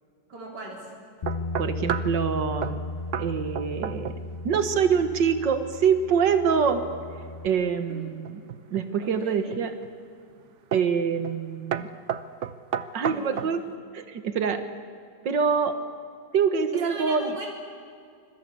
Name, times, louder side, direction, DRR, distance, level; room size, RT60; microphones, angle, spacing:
voice 1, 0.3-0.9 7.9-8.0 9.0-9.6 13.0-13.5 16.7-17.5, right 2 dB, 70° right, -2 dB, 4.4 m, -39 dB
Bass guitar, 1.2-7.5, left 2 dB, 60° left, 0.4 m, -35 dB
sound 1, 1.3-2.2 2.6-2.8 3.1-3.3 3.5-4.3 4.5-4.9 8.2-8.9 9.5-9.9 10.7-11.0 11.2-11.4 11.7-13.6, right 8 dB, 50° right, 1.0 m, -32 dB
voice 2, 1.6-2.8 3.2-4.1 4.4-6.8 7.4-8.4 8.7-9.7 10.7-11.9 12.9-13.6 13.9-14.6 15.3-15.8 16.3-17.4, right 6 dB, 90° right, 8 dB, 2.1 m, -25 dB
26.0 x 22.0 x 8.5 m, 2.3 s
omnidirectional pair, 1.9 m